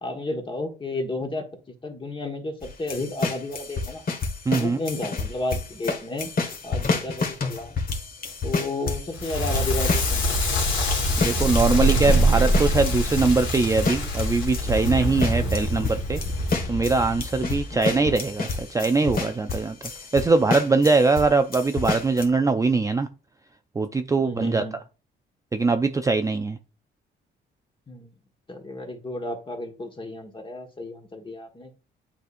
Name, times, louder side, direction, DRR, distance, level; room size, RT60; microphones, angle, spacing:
voice 1, 0.0-1.4 1.8-4.0 4.5-6.3 6.6-7.8 8.4-10.4 17.7-17.9 24.2-24.8 27.9-28.1 28.5-31.8, left 2 dB, 25° left, 3 dB, 1.5 m, -32 dB
sound 1, 2.6-21.3 21.5-22.3, left 4 dB, 45° left, 1.4 m, -29 dB
voice 2, 4.5-4.8 11.2-16.2 16.7-19.8 20.1-23.1 23.8-24.6 25.5-26.6, right 3 dB, 15° right, 7 dB, 0.4 m, -22 dB
Crackle, 9.1-18.1, equal, 85° left, 2.2 m, -24 dB
9.1 x 4.1 x 2.5 m, 0.34 s
cardioid pair, 90°, 20 cm